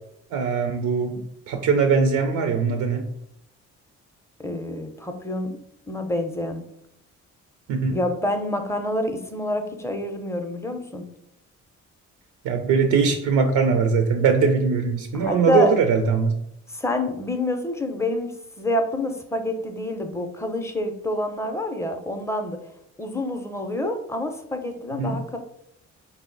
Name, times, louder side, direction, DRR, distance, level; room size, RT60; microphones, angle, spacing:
voice 1, 0.3-3.0 7.7-8.0 12.4-16.3 25.0-25.2, right 5 dB, 80° right, 6 dB, 0.5 m, -21 dB
voice 2, 4.4-5.6 5.9-6.6 7.9-11.1 15.1-15.7 16.7-22.6 23.0-25.4, left 1 dB, 10° left, 5 dB, 0.5 m, -27 dB
4.2 x 2.0 x 3.7 m, 0.76 s
cardioid pair, 90°, 30 cm